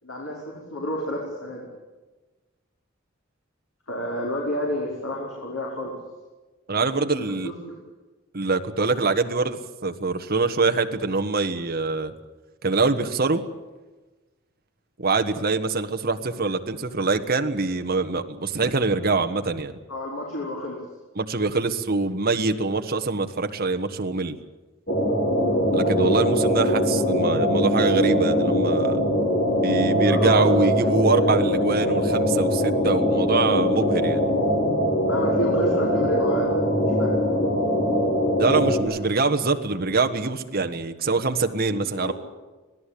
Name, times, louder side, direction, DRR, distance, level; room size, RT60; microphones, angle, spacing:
voice 1, 0.0-1.7 3.9-6.0 6.7-7.8 19.9-20.8 25.4-25.7 30.0-30.5 31.0-31.2 35.0-36.6 37.0-37.2 38.8-39.0 41.7-42.1, equal, 90° left, -4 dB, 5.3 m, -31 dB
voice 2, 6.7-7.5 8.3-12.1 12.6-13.4 15.0-19.8 21.1-24.3 25.7-29.0 29.6-34.2 38.4-42.1, right 3 dB, 45° right, 6 dB, 1.5 m, -24 dB
sound 1, 24.9-38.8, equal, 45° left, 4.8 m, -22 dB
26.0 x 17.5 x 8.6 m, 1.2 s
head